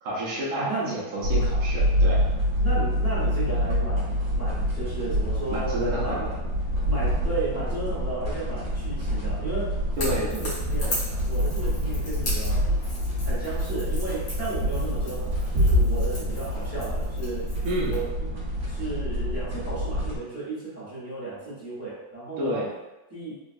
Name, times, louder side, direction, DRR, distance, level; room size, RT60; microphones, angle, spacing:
voice 1, 0.0-2.2 5.5-6.3 10.0-10.3 17.6-18.0 22.4-22.7, right 1 dB, 75° right, -6 dB, 0.8 m, -30 dB
voice 2, 0.5-1.0 2.6-6.3 6.9-11.0 11.3-12.6 13.2-17.4 17.8-18.1 18.7-22.6 23.1-23.4, right 2 dB, 10° right, -11 dB, 0.8 m, -34 dB
sound 1, 1.2-20.2, equal, 45° right, 1.4 m, -26 dB
Crackle / Crack, 9.9-18.0, left 1 dB, 55° left, 1.8 m, -38 dB
3.8 x 2.3 x 2.6 m, 1.1 s
omnidirectional pair, 2.3 m